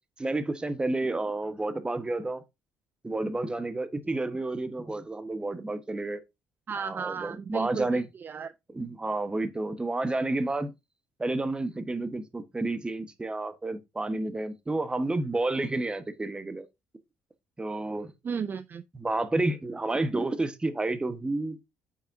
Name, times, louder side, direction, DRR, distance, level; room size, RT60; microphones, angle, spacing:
voice 1, 0.2-2.4 3.0-6.2 6.8-8.1 8.7-10.7 11.2-16.7 17.6-18.1 18.9-21.7, right 2 dB, 15° right, 1.2 m, -30 dB
voice 2, 6.7-8.5 18.2-18.8, right 6 dB, 40° right, 0.5 m, -34 dB
8.4 x 5.9 x 2.6 m
supercardioid pair, 85°, 5 cm